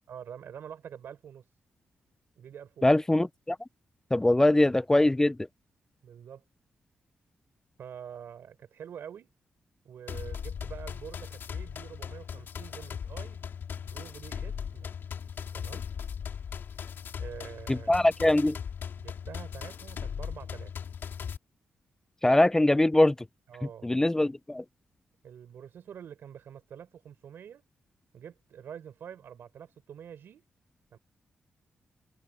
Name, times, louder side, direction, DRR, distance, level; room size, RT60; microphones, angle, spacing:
voice 1, 0.1-1.4 2.4-2.9 4.2-4.4 6.0-6.4 7.8-9.3 9.8-14.9 15.5-15.9 17.2-17.9 18.9-20.7 23.5-23.9 25.2-27.6 28.1-30.4 30.9-31.0, right 8 dB, 80° right, 4.1 m, -46 dB
voice 2, 2.8-3.6 4.1-5.4 17.7-18.6 22.2-23.2 23.8-24.6, left 1 dB, 15° left, 0.3 m, -22 dB
sound 1, 10.1-21.4, left 7 dB, 70° left, 3.2 m, -38 dB
cardioid pair, 70°, 4 cm